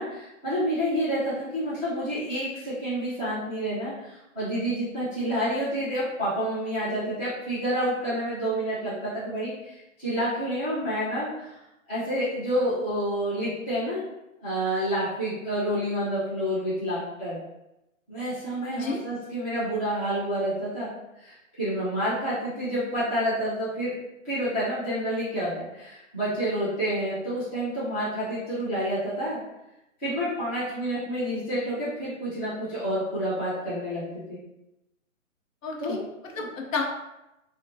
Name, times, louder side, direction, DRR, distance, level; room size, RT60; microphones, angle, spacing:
voice 1, 0.0-11.6 11.9-14.0 14.4-17.4 18.1-20.9 21.2-24.0 24.2-29.4 30.0-34.4 35.8-36.5, equal, 10° left, -13 dB, 0.5 m, -29 dB
voice 2, 18.6-19.0 35.6-36.0 36.4-36.8, left 4 dB, 70° left, 1 dB, 0.7 m, -30 dB
3.1 x 2.1 x 2.5 m, 0.93 s
hypercardioid pair, 155°, 40 cm